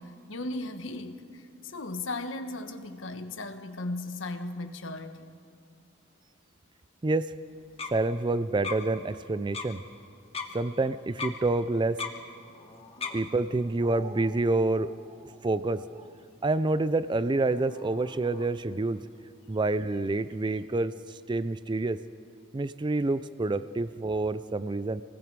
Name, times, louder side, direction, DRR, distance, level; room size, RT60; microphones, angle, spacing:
voice 1, 0.0-5.3, left 2 dB, 85° left, 1.4 m, -37 dB
voice 2, 7.0-7.3 7.9-9.8 10.5-12.0 13.1-16.1 16.4-19.0 19.5-22.0 22.5-25.0, right 2 dB, 25° right, 0.4 m, -28 dB
sound 1, 7.5-20.6, left 4 dB, 30° left, 1.6 m, -44 dB
28.0 x 20.0 x 4.8 m
head